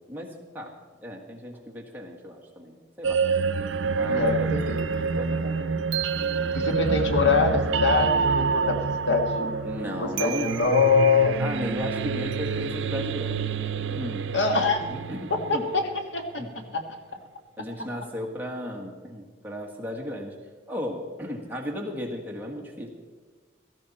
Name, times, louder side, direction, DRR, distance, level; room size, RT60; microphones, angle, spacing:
voice 1, 0.1-0.7 1.0-3.2 3.9-4.5 5.1-5.8 6.1-6.6 9.6-10.7 11.4-13.6 13.9-14.3 14.9-15.7 16.4-16.5 17.6-20.4 20.7-22.9, equal, 10° right, -1 dB, 1.7 m, -35 dB
sound 1, 3.0-16.0, right 5 dB, 85° right, 0.6 m, -27 dB
voice 2, 4.1-4.8 6.5-9.6 10.0-11.3 14.3-14.8 15.3-15.8 16.1-16.3 16.7-17.0, left 4 dB, 80° left, 5 dB, 1.6 m, -24 dB
17.0 x 14.5 x 4.3 m, 1.4 s
head